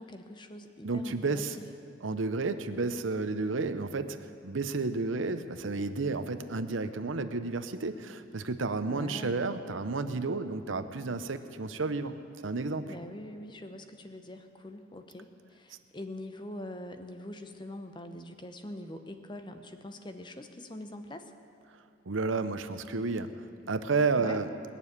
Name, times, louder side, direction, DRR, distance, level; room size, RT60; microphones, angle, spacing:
voice 1, 0.0-1.7 8.9-9.5 12.9-21.3 24.1-24.4, left 1 dB, 25° left, 7 dB, 0.9 m, -44 dB
voice 2, 0.8-1.6 2.0-4.2 4.4-12.2 12.4-12.9 22.1-23.3 23.7-24.5, right 3 dB, 90° right, 10 dB, 0.8 m, -31 dB
20.5 x 7.1 x 9.7 m, 2.5 s
head